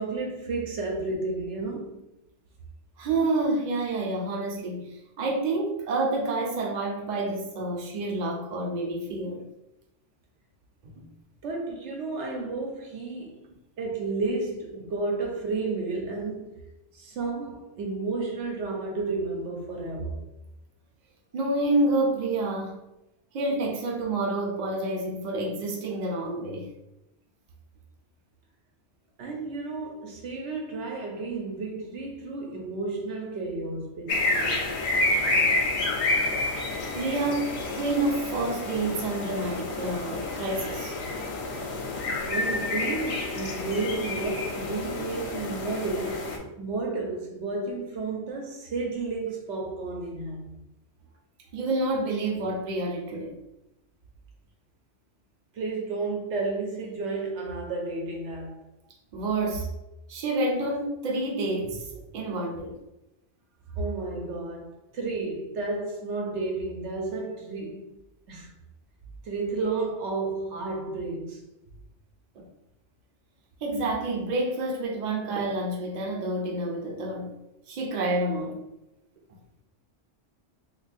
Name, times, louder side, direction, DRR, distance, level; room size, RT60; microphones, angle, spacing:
voice 1, 0.0-2.0 11.4-13.4 13.8-16.6 16.9-20.3 29.2-34.6 42.3-50.4 55.5-58.6 63.8-68.0 68.3-68.5 69.2-71.4, right 3 dB, 75° right, 1.0 m, -32 dB
voice 2, 3.0-4.9 5.2-9.4 11.0-11.1 21.3-22.8 23.3-26.7 36.9-41.0 51.5-53.4 59.1-59.7 60.1-62.8 72.4-72.5 73.6-77.3 77.7-78.6, right 2 dB, 45° right, 0.7 m, -28 dB
sound 1, 34.1-46.4, left 2 dB, 70° left, 0.9 m, -29 dB
2.5 x 2.4 x 4.0 m
omnidirectional pair, 1.2 m